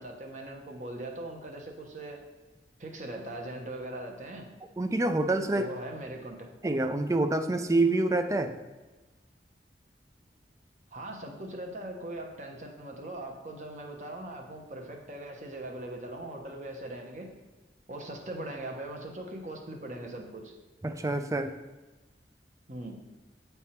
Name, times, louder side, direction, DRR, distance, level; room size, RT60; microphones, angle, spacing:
voice 1, 0.0-2.2 2.8-4.5 5.5-6.5 10.9-17.3 17.9-20.5 22.7-23.0, right 1 dB, 45° right, 2 dB, 0.9 m, -40 dB
voice 2, 4.8-5.7 6.6-8.6 20.8-21.5, right 2 dB, 20° right, 8 dB, 0.4 m, -27 dB
8.3 x 3.5 x 4.4 m, 1.2 s
head